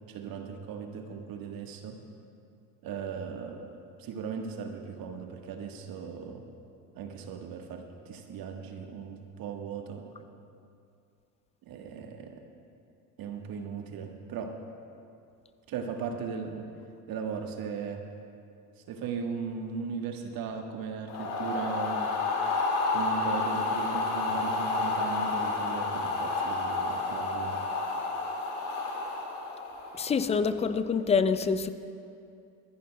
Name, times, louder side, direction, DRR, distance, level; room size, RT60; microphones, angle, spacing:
voice 1, 0.1-2.0 2.8-6.4 6.9-10.1 11.6-12.4 13.2-14.5 15.7-16.7 17.1-18.0 18.9-22.1 22.9-27.6, right 5 dB, 50° right, 3 dB, 1.4 m, -37 dB
sound 1, 21.1-30.2, left 3 dB, 75° left, 2.2 m, -30 dB
voice 2, 29.9-31.7, left 5 dB, 15° left, 12 dB, 0.3 m, -26 dB
23.5 x 11.0 x 2.2 m, 2.5 s
hypercardioid pair, 75°, 46 cm